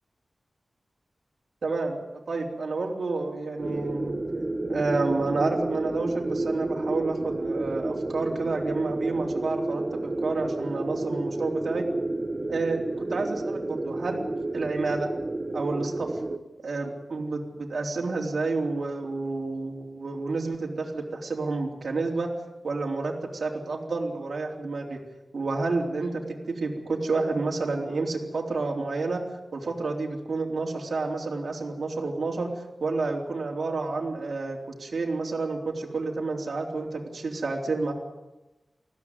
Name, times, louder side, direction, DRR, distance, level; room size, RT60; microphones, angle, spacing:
voice 1, 1.6-4.1 4.7-11.9 12.5-14.2 14.5-15.1 15.5-16.1 16.6-22.3 22.6-25.0 25.3-26.2 26.6-29.2 29.5-37.9, right 3 dB, 65° right, 0 dB, 3.7 m, -30 dB
sound 1, 3.6-16.4, right 2 dB, 30° right, 1.2 m, -31 dB
20.5 x 16.0 x 9.7 m, 1.1 s
wide cardioid pair, 120°, 0 cm